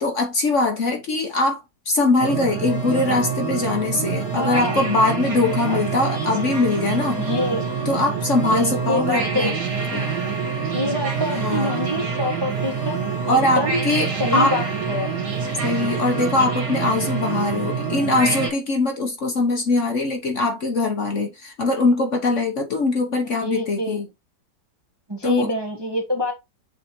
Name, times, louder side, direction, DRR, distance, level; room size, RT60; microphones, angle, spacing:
voice 1, 0.0-1.6 1.9-7.2 7.8-9.5 9.9-10.1 11.3-11.7 13.3-14.5 15.6-24.1 25.2-25.5, left 3 dB, 50° left, 1.2 m, -22 dB
sound 1, 2.2-18.5, right 5 dB, 65° right, 2.4 m, -26 dB
voice 2, 4.3-4.8 5.7-5.8 7.3-7.6 8.5-9.5 10.7-13.0 13.3-13.8 14.2-15.1 23.4-24.0 25.1-26.3, left 1 dB, 15° right, 1.0 m, -26 dB
7.7 x 3.9 x 3.1 m
omnidirectional pair, 1.9 m